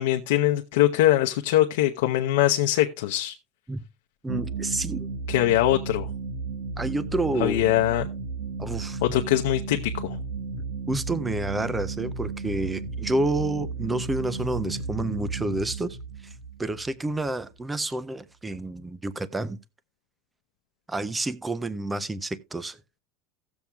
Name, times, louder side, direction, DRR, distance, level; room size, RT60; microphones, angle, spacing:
voice 1, 0.0-3.3 5.3-6.1 7.4-8.1 9.0-10.2, left 14 dB, 80° left, 0.7 m, -22 dB
voice 2, 4.2-5.1 6.8-7.6 8.6-9.0 10.9-16.0 16.2-16.3 16.6-19.6 20.9-22.8, right 2 dB, 10° right, 0.4 m, -29 dB
sound 1, 4.3-17.6, right 4 dB, 60° right, 1.4 m, -34 dB
17.0 x 7.0 x 2.3 m
cardioid pair, 180°, 0 cm